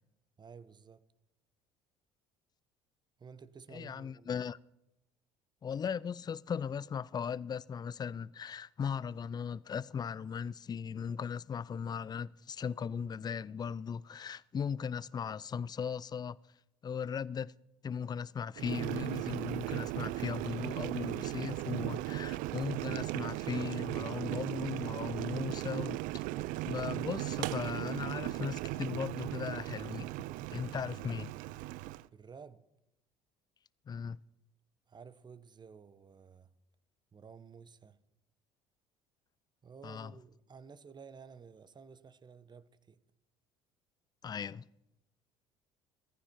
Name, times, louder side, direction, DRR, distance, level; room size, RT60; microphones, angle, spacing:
voice 1, 0.4-1.1 3.2-4.4 32.1-32.6 34.9-36.5 37.1-38.0 39.6-43.0, right 6 dB, 30° right, 1.0 m, -53 dB
voice 2, 3.7-4.6 5.6-16.4 16.8-17.5 17.8-26.2 26.6-30.1 30.5-31.3 33.9-34.2 39.8-40.1 44.2-44.7, left 7 dB, 25° left, 0.4 m, -38 dB
Boiling, 18.6-32.1, right 17 dB, 65° right, 0.5 m, -37 dB
18.5 x 14.5 x 4.5 m
hypercardioid pair, 65°, 15 cm